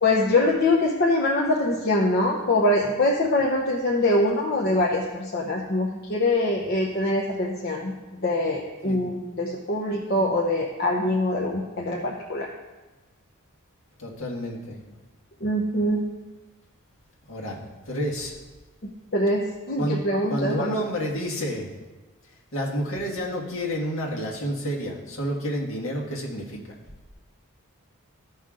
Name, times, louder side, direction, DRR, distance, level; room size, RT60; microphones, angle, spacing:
voice 1, 0.0-8.0 8.2-12.5 15.4-16.0 19.1-20.8, left 1 dB, 45° left, -2 dB, 0.9 m, -23 dB
voice 2, 14.0-14.8 17.3-17.6 17.9-18.4 19.8-20.0 20.3-21.7 22.5-26.6, equal, 60° left, -3 dB, 1.9 m, -29 dB
14.5 x 5.7 x 3.8 m, 1.2 s
head